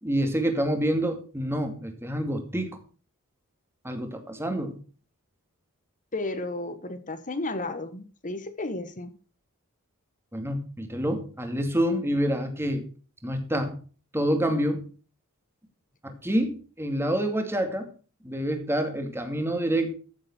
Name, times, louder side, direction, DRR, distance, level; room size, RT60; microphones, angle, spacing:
voice 1, 0.0-2.8 3.8-4.7 10.3-12.8 13.2-13.8 14.1-14.9 16.0-17.9 18.2-20.0, equal, 10° right, 2.4 m, -27 dB
voice 2, 6.1-9.1, left 2 dB, 35° left, 1.4 m, -33 dB
14.5 x 7.5 x 4.5 m
head